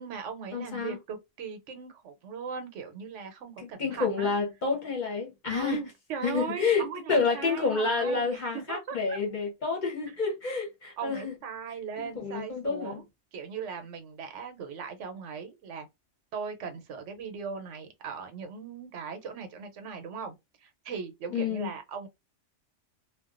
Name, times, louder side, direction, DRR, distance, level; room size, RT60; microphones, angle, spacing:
voice 1, 0.0-4.3 5.5-9.2 11.0-13.0 13.3-15.9 16.3-20.3 20.6-22.1, right 6 dB, 80° right, 1.0 m, -39 dB
voice 2, 0.5-1.0 3.6-5.8 6.2-11.3 12.0-13.0 21.3-21.7, left 4 dB, 45° left, 0.8 m, -29 dB
2.3 x 2.2 x 2.4 m
omnidirectional pair, 1.2 m